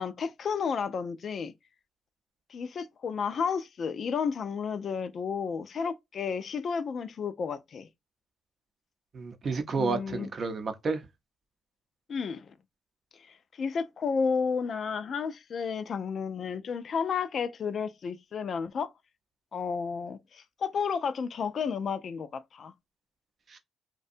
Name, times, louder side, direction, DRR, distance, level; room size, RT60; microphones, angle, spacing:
voice 1, 0.0-1.5 2.5-7.9 9.7-10.3 12.1-12.5 13.6-18.9 19.5-22.7, left 6 dB, 55° left, 0.3 m, -32 dB
voice 2, 9.1-11.0 23.5-23.6, right 4 dB, 50° right, 0.6 m, -31 dB
2.6 x 2.2 x 2.4 m
cardioid pair, 75°, 0 cm